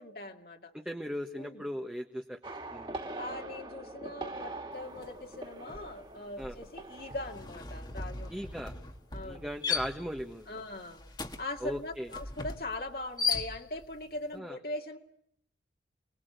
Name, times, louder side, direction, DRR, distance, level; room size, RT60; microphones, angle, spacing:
voice 1, 0.0-0.7 1.4-1.6 3.2-8.3 9.1-9.6 10.5-11.0 11.4-15.0, left 2 dB, 55° left, 2 dB, 2.2 m, -41 dB
voice 2, 0.7-2.4 2.7-3.0 6.4-6.6 8.3-8.7 9.2-10.5 11.6-12.1 14.3-14.6, equal, 5° right, 2 dB, 1.2 m, -38 dB
sound 1, 2.4-8.9 9.2-9.5, right 2 dB, 25° right, 2.3 m, -44 dB
sound 2, 5.0-5.2 5.5-14.0, left 5 dB, 25° left, 1.5 m, -38 dB
29.5 x 20.5 x 8.0 m, 0.71 s
head